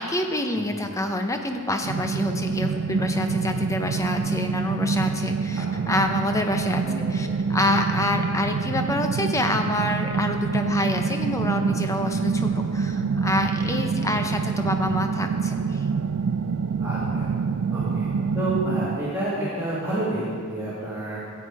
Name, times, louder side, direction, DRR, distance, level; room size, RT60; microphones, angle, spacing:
voice 1, 0.0-6.8 7.1-15.9, left 1 dB, 15° left, 5 dB, 0.7 m, -27 dB
voice 2, 0.5-0.9 5.6-5.9 6.8-7.3 13.8-14.2 16.8-17.3 17.7-18.1 18.3-21.2, right 1 dB, 15° right, -10 dB, 2.2 m, -30 dB
sound 1, 1.8-19.0, right 5 dB, 65° right, 0.4 m, -26 dB
13.5 x 8.2 x 4.7 m, 2.4 s
head